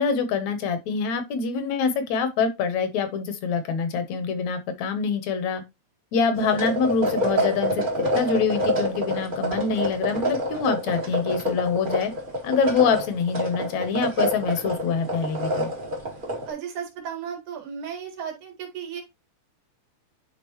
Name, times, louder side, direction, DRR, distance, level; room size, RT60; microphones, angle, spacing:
voice 1, 0.0-5.6 6.1-12.1 12.4-15.7, left 5 dB, 70° left, 2.1 m, -25 dB
sound 1, 6.3-16.5, equal, 60° right, 0.5 m, -27 dB
voice 2, 16.5-19.0, right 7 dB, 90° right, 3.3 m, -34 dB
10.0 x 3.7 x 3.0 m
omnidirectional pair, 3.4 m